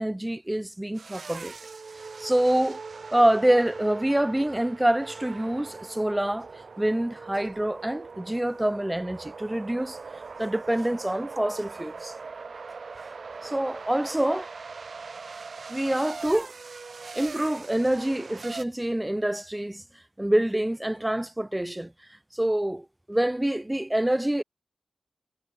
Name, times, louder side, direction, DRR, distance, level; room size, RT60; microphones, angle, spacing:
voice 1, 0.0-1.5 2.2-2.8 3.1-6.5 6.8-10.0 10.4-12.1 13.4-14.5 15.7-16.5 17.1-19.8 20.2-21.9 22.3-24.4, right 1 dB, 10° right, 0.6 m, -26 dB
sound 1, 0.9-18.6, right 4 dB, 60° right, 0.9 m, -41 dB
wide cardioid pair, 95°, 0 cm